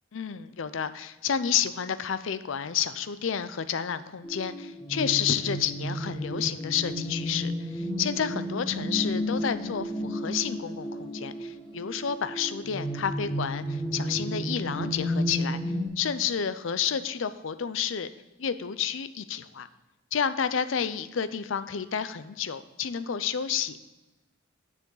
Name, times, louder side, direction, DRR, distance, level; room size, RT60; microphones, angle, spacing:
voice 1, 0.1-15.6 16.0-18.1 18.4-19.7 20.1-23.8, left 8 dB, 70° left, 13 dB, 0.5 m, -30 dB
sound 1, 4.2-15.9, equal, 5° left, 1.7 m, -32 dB
9.8 x 7.0 x 3.9 m, 1.1 s
head